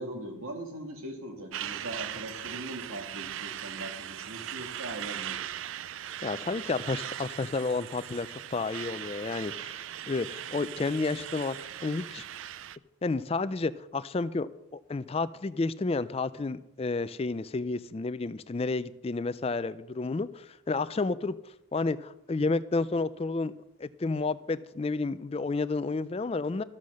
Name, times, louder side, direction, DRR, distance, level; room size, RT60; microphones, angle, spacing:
voice 1, 0.0-5.4, right 1 dB, 80° right, 3 dB, 2.3 m, -40 dB
Truck, 1.5-12.8, right 11 dB, 65° right, 0.4 m, -39 dB
voice 2, 6.2-9.8 10.1-12.2 13.0-21.3 21.7-23.5 23.8-26.6, left 3 dB, 30° left, 15 dB, 0.3 m, -31 dB
13.5 x 7.5 x 6.3 m, 0.85 s
head